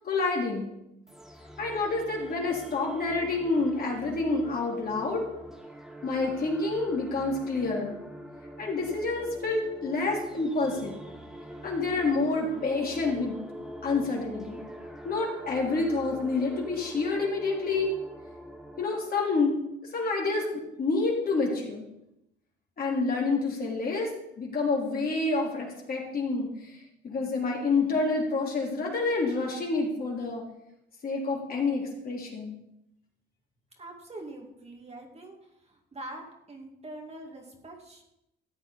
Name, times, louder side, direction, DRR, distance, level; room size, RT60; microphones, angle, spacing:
voice 1, 0.0-0.7 1.6-5.2 6.0-8.0 8.6-10.9 11.6-13.4 13.8-14.6 15.0-17.9 18.8-19.6 19.9-21.8 22.8-24.1 24.4-26.8 27.0-30.4 31.0-32.5, left 3 dB, 50° left, -2 dB, 3.5 m, -28 dB
sound 1, 1.1-18.8, equal, ahead, 1.4 m, -43 dB
voice 2, 33.8-35.4 35.7-38.0, right 1 dB, 30° right, 0 dB, 2.3 m, -44 dB
13.5 x 8.2 x 4.2 m, 0.84 s
cardioid pair, 90°, 20 cm